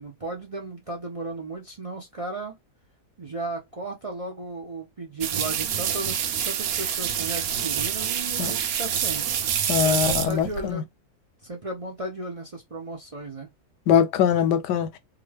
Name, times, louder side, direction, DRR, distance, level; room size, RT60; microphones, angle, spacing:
voice 1, 0.0-2.5 3.2-9.4 9.8-10.9 11.4-13.5, right 2 dB, 45° right, 0.4 m, -35 dB
sound 1, 5.2-10.7, right 9 dB, 70° right, 0.9 m, -27 dB
voice 2, 9.7-10.8 13.9-14.9, left 8 dB, 90° left, 1.3 m, -22 dB
2.9 x 2.4 x 3.3 m
omnidirectional pair, 1.7 m